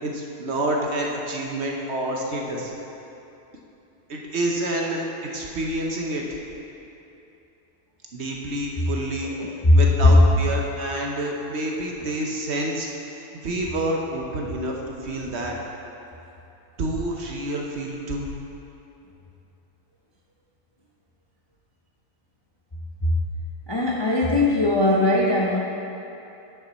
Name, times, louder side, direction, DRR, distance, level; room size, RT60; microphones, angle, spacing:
voice 1, 0.0-2.7 4.1-5.0 5.3-6.2 8.1-9.3 9.7-12.9 13.4-14.8 15.0-15.6 16.8-18.3, right 1 dB, 55° right, 0 dB, 1.0 m, -28 dB
voice 2, 9.4-10.2 12.0-12.1 23.0-23.1 23.7-25.6, left 2 dB, 30° left, -4 dB, 0.5 m, -19 dB
10.5 x 5.8 x 4.1 m, 2.8 s
omnidirectional pair, 1.5 m